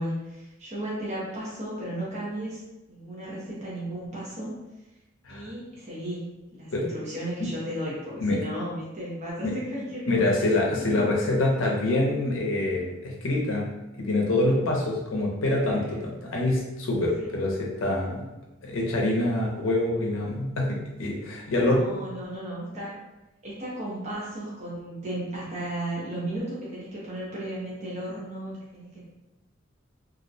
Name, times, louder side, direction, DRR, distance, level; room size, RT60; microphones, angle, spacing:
voice 1, 0.0-2.6 2.9-4.5 5.3-6.2 6.5-10.5 10.9-11.0 15.4-15.6 21.5-22.9 23.4-29.0, right 1 dB, 35° right, -7 dB, 0.6 m, -35 dB
voice 2, 10.1-13.7 14.0-18.3 18.6-21.8, left 2 dB, 70° left, -1 dB, 0.6 m, -25 dB
2.4 x 2.1 x 2.6 m, 1.0 s
head